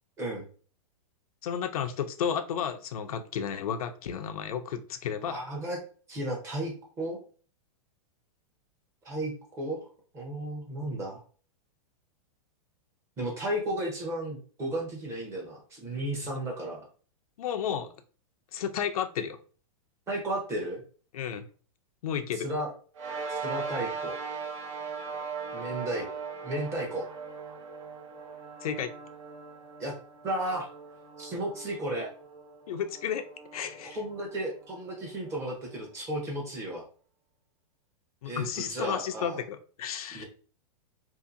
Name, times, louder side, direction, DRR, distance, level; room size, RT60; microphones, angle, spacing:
voice 1, 1.4-5.4 16.2-16.3 17.4-17.9 18.5-19.4 21.1-21.5 22.0-22.5 28.6-28.9 32.7-33.3 33.5-34.0 38.2-40.2, left 8 dB, 85° left, 8 dB, 0.5 m, -32 dB
voice 2, 5.3-5.8 6.1-7.2 9.0-9.8 10.1-11.2 13.2-16.8 20.1-20.8 22.3-22.7 23.3-24.2 25.5-26.1 26.4-27.1 29.8-29.9 30.2-30.7 31.2-32.1 33.8-36.8 38.2-39.4 40.1-40.2, right 1 dB, 15° right, -1 dB, 0.7 m, -34 dB
sound 1, 22.9-35.7, right 5 dB, 60° right, 0.8 m, -40 dB
2.8 x 2.7 x 2.5 m, 0.40 s
supercardioid pair, 165°, 18 cm